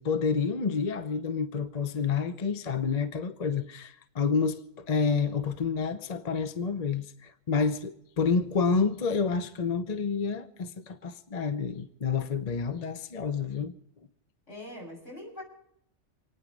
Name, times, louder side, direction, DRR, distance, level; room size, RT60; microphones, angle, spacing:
voice 1, 0.0-13.7, left 5 dB, 35° left, 0.8 m, -29 dB
voice 2, 14.5-15.4, left 1 dB, 75° left, 7.6 m, -42 dB
28.0 x 9.8 x 5.2 m
omnidirectional pair, 1.3 m